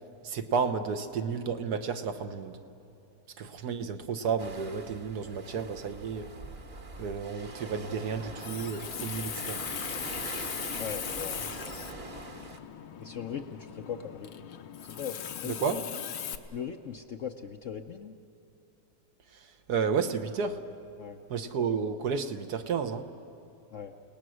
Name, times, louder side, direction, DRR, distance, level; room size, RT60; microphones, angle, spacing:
voice 1, 0.2-2.6 3.4-6.3 7.0-9.6 15.5-15.8 19.3-20.6 21.3-23.1, right 6 dB, 65° right, 8 dB, 1.4 m, -32 dB
sound 1, 4.4-12.6, right 3 dB, 35° right, 1.4 m, -43 dB
Water tap faucet, 8.2-16.4, left 9 dB, 80° left, 1.5 m, -39 dB
voice 2, 10.8-11.8 13.0-14.3 14.8-16.0 16.5-18.2 21.0-21.2 23.7-23.9, left 8 dB, 60° left, 6 dB, 0.8 m, -39 dB
30.0 x 18.5 x 6.3 m, 2.9 s
omnidirectional pair, 1.9 m